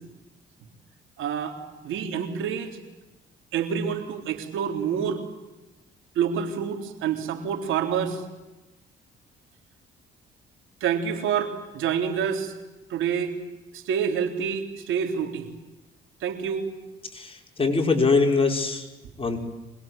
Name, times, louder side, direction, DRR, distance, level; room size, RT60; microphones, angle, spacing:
voice 1, 1.2-1.6 1.8-2.8 3.5-5.2 6.2-8.2 10.8-12.5 12.9-13.3 13.7-15.5 16.2-16.7, right 7 dB, 85° right, 5 dB, 3.8 m, -27 dB
voice 2, 17.1-18.9 19.2-19.4, left 4 dB, 30° left, 2 dB, 5.7 m, -23 dB
26.0 x 21.5 x 9.0 m, 1.1 s
cardioid pair, 90°, 20 cm